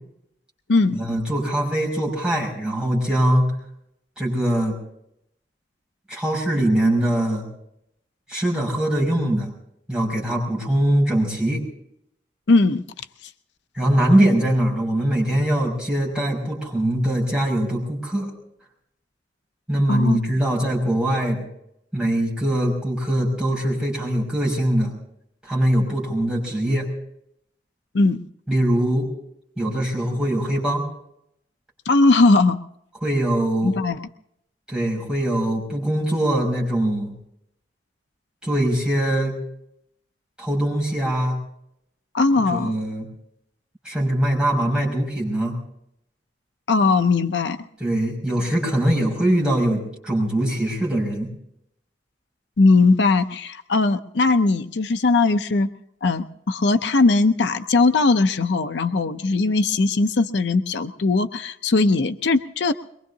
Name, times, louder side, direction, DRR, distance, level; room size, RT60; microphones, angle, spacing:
voice 1, 0.9-3.5 4.2-4.8 6.1-7.5 8.3-9.5 9.9-11.6 13.7-18.3 19.7-21.4 21.9-24.9 25.4-26.9 28.5-29.1 29.6-30.9 33.0-33.7 34.7-37.1 38.4-39.4 40.4-41.4 42.5-43.0 43.8-45.6 47.8-51.3, right 1 dB, 5° right, -4 dB, 6.1 m, -22 dB
voice 2, 12.5-13.3 19.9-20.2 27.9-28.2 31.9-32.6 33.6-34.0 42.1-42.8 46.7-47.6 52.6-55.7 56.0-62.7, left 3 dB, 70° left, 9 dB, 0.6 m, -19 dB
23.0 x 22.5 x 2.8 m, 0.77 s
head